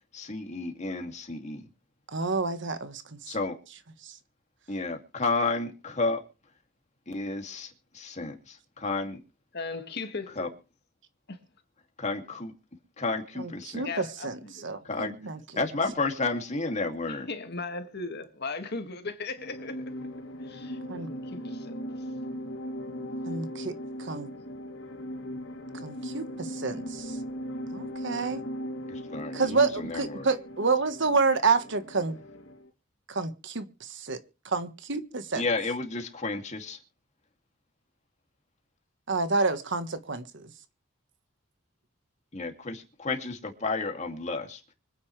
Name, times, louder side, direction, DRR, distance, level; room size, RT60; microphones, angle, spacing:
voice 1, 0.1-1.7 3.3-3.6 4.7-6.2 7.1-9.2 10.4-10.5 12.0-12.5 13.0-13.9 14.8-15.1 15.6-17.3 28.9-30.3 35.3-36.8 42.3-44.6, left 3 dB, 35° left, 2.6 m, -31 dB
voice 2, 2.1-3.3 4.0-4.1 13.4-15.4 20.9-21.1 23.3-23.7 24.0-24.3 25.8-27.2 27.7-28.4 29.3-32.2 33.1-34.2 34.4-35.4 39.1-40.4, right 4 dB, 65° right, 1.4 m, -29 dB
voice 3, 9.5-10.5 11.3-11.4 13.8-14.9 17.1-20.0 20.4-21.8, left 3 dB, 55° left, 2.0 m, -38 dB
sound 1, 19.4-32.7, equal, 70° left, 2.6 m, -38 dB
25.5 x 9.6 x 3.3 m
head